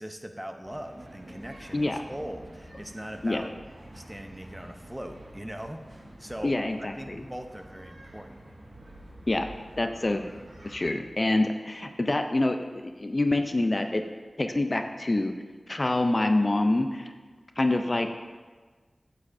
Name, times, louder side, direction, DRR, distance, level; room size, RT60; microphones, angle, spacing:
voice 1, 0.0-3.5 3.9-8.4, equal, 10° right, 6 dB, 0.5 m, -40 dB
sound 1, 0.6-11.0, right 1 dB, 80° right, 1.6 m, -48 dB
voice 2, 6.4-7.2 9.3-9.5 9.8-10.2 10.6-14.0 14.4-15.3 15.7-17.1 17.6-18.1, left 2 dB, 40° left, 6 dB, 0.4 m, -26 dB
8.1 x 7.6 x 2.5 m, 1.4 s
wide cardioid pair, 70°, 0 cm